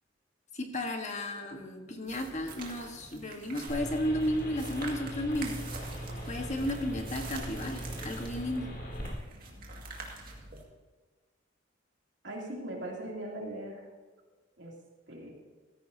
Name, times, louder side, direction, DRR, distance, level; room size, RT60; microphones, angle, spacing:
voice 1, 0.5-5.6 6.3-8.7, left 1 dB, 40° left, 4 dB, 1.4 m, -33 dB
sound 1, 2.1-10.6, right 3 dB, 50° right, 2.1 m, -46 dB
sound 2, 3.7-9.1, equal, 55° left, 3.1 m, -40 dB
voice 2, 12.2-13.9 14.6-14.7 15.1-15.3, right 1 dB, 65° right, -1 dB, 2.9 m, -39 dB
16.0 x 14.0 x 2.8 m, 1.3 s
head